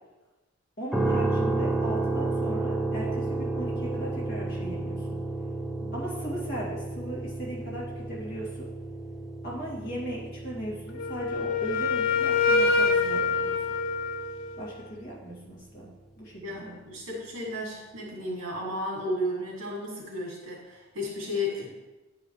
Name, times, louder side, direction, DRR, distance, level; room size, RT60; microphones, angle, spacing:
voice 1, 0.8-5.2 5.9-8.7 9.4-13.6 14.6-15.9 16.2-16.8, right 1 dB, 50° left, -5 dB, 2.1 m, -37 dB
sound 1, 0.9-14.9, right 2 dB, ahead, 0.4 m, -32 dB
Wind instrument woodwind instrument, 11.0-14.8, left 4 dB, 85° left, 0.5 m, -26 dB
voice 2, 16.4-21.8, left 1 dB, 75° right, -4 dB, 2.6 m, -33 dB
9.7 x 5.0 x 3.2 m, 1.1 s
head